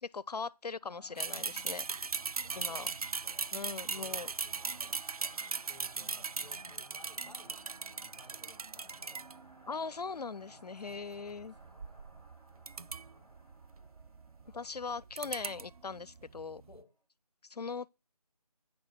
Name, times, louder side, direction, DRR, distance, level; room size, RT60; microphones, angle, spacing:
voice 1, 0.0-1.9 2.6-2.9 3.5-4.3 9.7-11.5 14.5-16.6 17.5-17.9, left 4 dB, 75° left, 0.5 m, -40 dB
sound 1, 0.8-16.6, right 1 dB, 40° right, 5.2 m, -59 dB
sound 2, 1.2-9.6 10.8-16.8, right 5 dB, 65° right, 0.4 m, -39 dB
voice 2, 2.1-9.3 10.5-13.4 14.4-14.7 16.6-16.9, left 2 dB, 10° left, 1.0 m, -60 dB
9.5 x 6.1 x 6.7 m
figure-of-eight pair, 170°, 20 cm